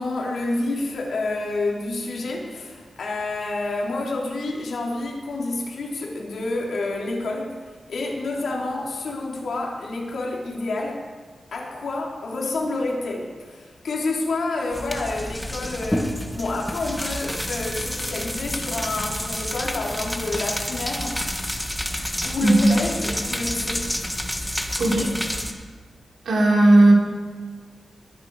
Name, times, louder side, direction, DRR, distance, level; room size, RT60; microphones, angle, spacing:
voice 1, 0.0-7.6 7.9-11.0 11.5-21.2 22.2-23.9, left 2 dB, 75° left, -1 dB, 3.3 m, -28 dB
sound 1, 14.7-25.5, equal, 5° left, 1.3 m, -29 dB
voice 2, 22.4-22.8 24.8-25.1 26.2-26.9, right 1 dB, 80° right, -3 dB, 4.3 m, -16 dB
22.0 x 10.5 x 4.8 m, 1.5 s
wide cardioid pair, 130°, 0 cm